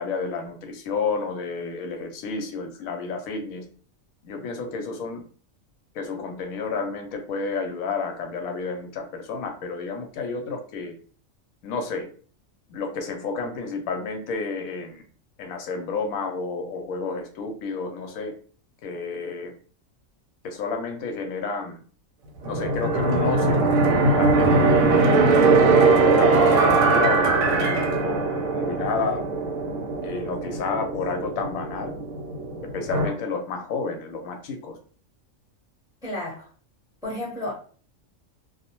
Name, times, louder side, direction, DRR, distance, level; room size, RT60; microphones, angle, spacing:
voice 1, 0.0-3.7 4.2-5.2 5.9-10.9 11.6-12.1 12.7-15.0 15.4-18.3 18.8-19.5 20.4-21.8 22.4-23.7 24.2-25.1 25.7-29.3 30.0-32.0 32.7-34.8, left 4 dB, 85° left, 1.0 m, -31 dB
sound 1, 22.4-33.1, right 3 dB, 70° right, 0.9 m, -21 dB
voice 2, 36.0-36.5 37.0-37.5, left 1 dB, 5° right, 0.7 m, -31 dB
2.4 x 2.0 x 2.8 m
omnidirectional pair, 1.4 m